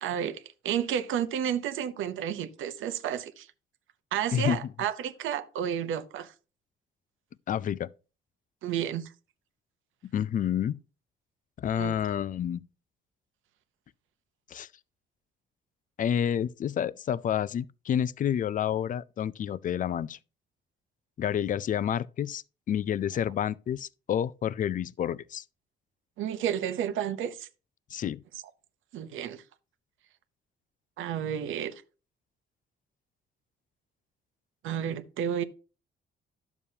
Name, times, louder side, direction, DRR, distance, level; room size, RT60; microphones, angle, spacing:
voice 1, 0.0-3.5 4.1-6.3 8.6-9.1 11.8-11.9 18.7-18.8 26.2-27.5 28.9-29.4 31.0-31.7 34.6-35.4, right 9 dB, 80° right, 0.8 m, -31 dB
voice 2, 7.5-7.9 10.0-10.8 11.6-12.6 14.5-14.7 16.0-20.2 21.2-25.4 27.9-28.2, left 9 dB, 40° left, 0.4 m, -29 dB
11.0 x 7.0 x 2.8 m
cardioid pair, 90°, 20 cm